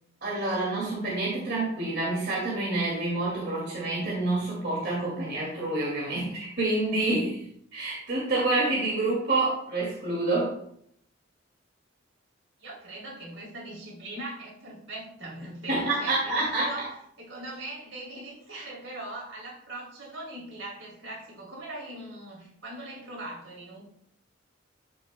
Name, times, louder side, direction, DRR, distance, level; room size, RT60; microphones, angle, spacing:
voice 1, 0.2-7.4 7.7-10.6 15.7-16.8, right 2 dB, 55° right, -5 dB, 2.3 m, -28 dB
voice 2, 12.6-16.9 17.2-23.8, right 1 dB, 75° right, -3 dB, 3.0 m, -40 dB
13.0 x 6.1 x 2.2 m, 0.69 s
head